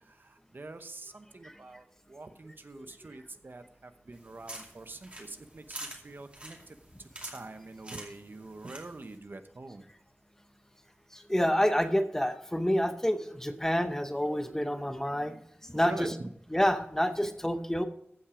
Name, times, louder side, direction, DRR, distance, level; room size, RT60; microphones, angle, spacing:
voice 1, 0.5-1.8 2.1-3.6 4.1-5.3 5.5-5.8 6.0-6.6 7.3-9.8 15.7-16.3, right 2 dB, 55° right, 9 dB, 0.9 m, -44 dB
sound 1, 4.1-9.2, right 1 dB, 30° right, 2.5 m, -47 dB
voice 2, 11.1-15.4 15.6-16.1 16.5-17.8, equal, 10° left, 8 dB, 0.7 m, -28 dB
15.5 x 5.8 x 5.0 m, 0.71 s
wide cardioid pair, 75°, 4 cm